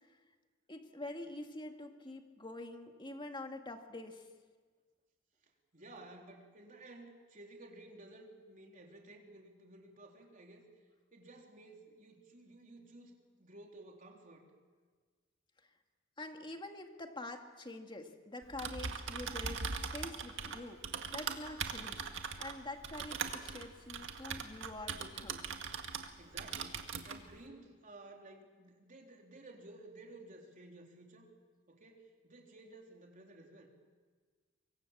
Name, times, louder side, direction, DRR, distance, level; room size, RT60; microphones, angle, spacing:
voice 1, 0.7-4.3 16.2-19.6 19.9-20.8 21.1-22.1 22.4-25.5, left 2 dB, 25° left, 4 dB, 2.1 m, -46 dB
voice 2, 5.4-10.6 11.1-14.5 25.9-31.3 31.7-33.7, right 2 dB, 40° right, 1 dB, 3.8 m, -55 dB
Typing, 18.4-26.1 26.4-27.2, right 5 dB, 65° right, 1.9 m, -40 dB
24.5 x 24.0 x 7.4 m, 1.5 s
head